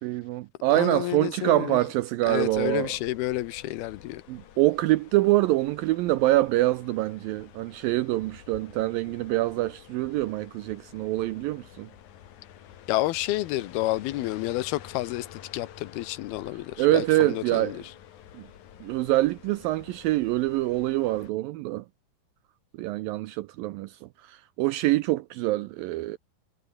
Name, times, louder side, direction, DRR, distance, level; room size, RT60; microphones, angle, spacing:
voice 1, 0.0-2.9 4.3-11.9 16.8-17.8 18.3-18.5 18.8-21.9 22.8-26.2, right 17 dB, 85° right, 2.1 m, -25 dB
voice 2, 0.7-1.8 2.3-4.2 12.9-17.8, left 16 dB, 75° left, 2.9 m, -30 dB
sound 1, 2.2-21.3, left 10 dB, 55° left, 2.7 m, -49 dB
omnidirectional pair, 4.6 m